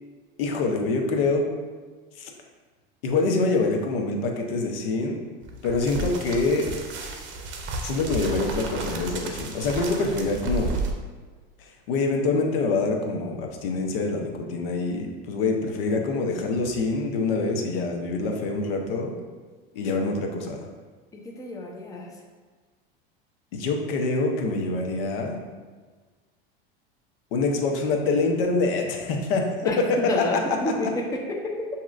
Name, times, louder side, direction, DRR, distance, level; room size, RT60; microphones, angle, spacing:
voice 1, 0.4-1.5 2.2-2.3 3.0-5.2 5.6-6.7 7.8-10.8 11.9-19.1 19.7-20.6 23.5-25.4 27.3-29.5 29.8-30.4 30.6-30.7, left 3 dB, 75° left, 2 dB, 0.8 m, -25 dB
sound 1, 5.4-10.9, right 2 dB, 40° right, 0.7 m, -32 dB
voice 2, 15.7-16.1 21.1-22.2 29.6-29.8 30.1-31.7, left 1 dB, 10° left, 0 dB, 0.6 m, -30 dB
7.2 x 2.8 x 2.4 m, 1.4 s
supercardioid pair, 105°, 29 cm